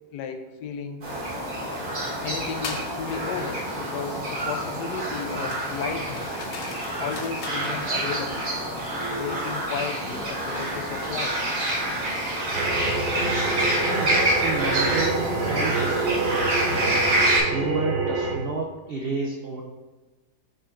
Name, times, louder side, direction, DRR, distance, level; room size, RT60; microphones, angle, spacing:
voice 1, 0.1-1.1 2.2-6.4 7.0-8.5 9.1-11.4, left 6 dB, 80° left, 7 dB, 1.2 m, -34 dB
sound 1, 1.0-17.4, right 1 dB, 55° right, 1.8 m, -27 dB
sound 2, 2.6-2.9 5.5-7.8, left 5 dB, 60° left, 0.9 m, -39 dB
sound 3, 12.5-18.4, right 3 dB, 85° right, 1.5 m, -27 dB
voice 2, 13.8-17.1 17.5-19.6, right 4 dB, 70° right, 0 dB, 0.5 m, -31 dB
6.4 x 6.1 x 2.5 m, 1.2 s
omnidirectional pair, 1.8 m